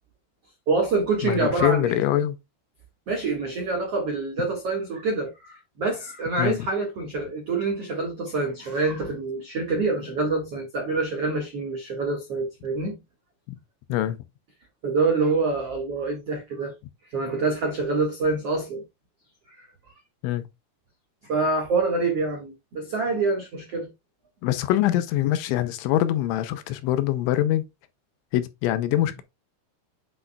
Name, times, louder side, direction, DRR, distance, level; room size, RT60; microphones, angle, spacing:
voice 1, 0.7-2.0 3.1-12.9 14.8-16.7 17.1-18.8 19.6-19.7 21.3-23.9, right 3 dB, 75° right, 1.3 m, -26 dB
voice 2, 1.2-2.4 6.4-6.6 13.9-14.2 20.2-20.4 24.4-27.7 28.3-29.2, left 13 dB, 80° left, 3.0 m, -24 dB
8.9 x 6.2 x 2.3 m
omnidirectional pair, 5.7 m